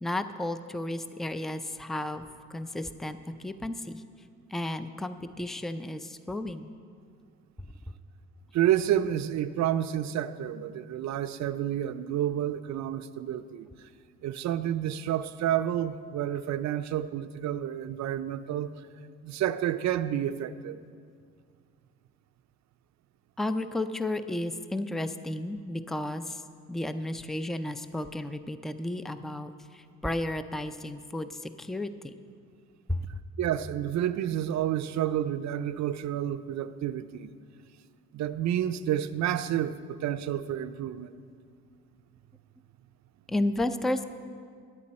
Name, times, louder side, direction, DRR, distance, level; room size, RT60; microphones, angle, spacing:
voice 1, 0.0-2.2 2.5-4.0 4.5-6.7 23.4-26.4 26.7-32.1 32.9-33.1 43.3-44.0, left 1 dB, ahead, 11 dB, 0.4 m, -33 dB
voice 2, 8.5-13.7 14.2-18.7 19.2-20.8 33.4-37.3 38.1-41.1, right 11 dB, 65° right, 12 dB, 0.5 m, -29 dB
14.0 x 9.8 x 4.2 m, 2.2 s
cardioid pair, 90°, 30 cm